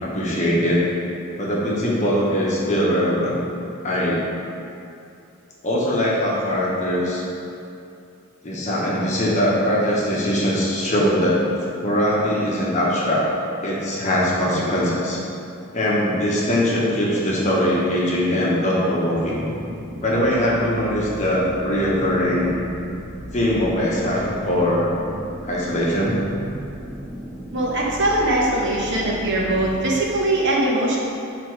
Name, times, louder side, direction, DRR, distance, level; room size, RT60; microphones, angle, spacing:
voice 1, 0.0-0.8 1.4-3.4 3.8-4.2 5.6-7.2 8.4-11.4 11.8-13.3 13.6-15.2 15.7-19.5 20.0-22.5 23.3-24.9 25.4-26.2, equal, 30° left, -5 dB, 1.0 m, -21 dB
sound 1, 19.4-30.0, right 1 dB, 5° right, 0.4 m, -35 dB
voice 2, 27.5-31.0, right 1 dB, 55° right, -4 dB, 1.0 m, -21 dB
6.8 x 3.5 x 4.6 m, 2.6 s
head